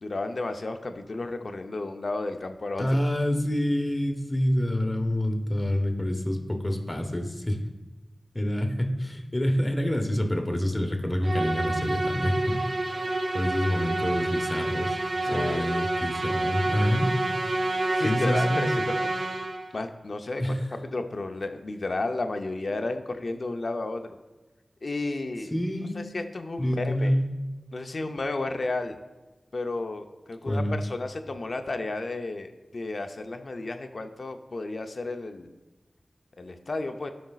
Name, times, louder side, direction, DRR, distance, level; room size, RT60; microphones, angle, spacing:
voice 1, 0.0-2.9 15.2-15.7 17.9-19.1 19.7-24.2 24.8-25.5 26.0-27.1 27.7-29.0 29.5-35.5 36.4-37.1, left 2 dB, 65° left, 6 dB, 0.6 m, -32 dB
voice 2, 2.8-7.6 8.3-12.6 13.3-14.9 15.3-17.2 17.6-17.7 18.0-18.6 20.4-20.6 25.5-26.0 26.6-27.3 30.5-30.8, equal, 25° left, 3 dB, 1.2 m, -27 dB
Musical instrument, 11.2-19.8, right 2 dB, 60° right, 0.7 m, -28 dB
13.5 x 5.1 x 2.4 m, 1.1 s
cardioid pair, 45°, 0 cm